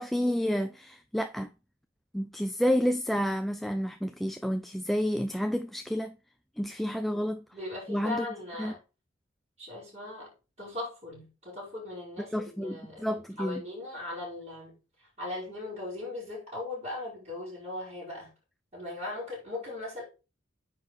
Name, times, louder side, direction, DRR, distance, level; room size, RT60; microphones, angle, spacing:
voice 1, 0.0-1.5 2.1-6.2 6.6-7.4 7.9-8.3 8.6-8.7 12.3-13.6, equal, ahead, 0.3 m, -30 dB
voice 2, 7.1-8.8 9.6-10.3 10.6-18.3 18.7-20.0, left 2 dB, 35° right, 4.7 m, -39 dB
9.4 x 4.1 x 4.0 m
head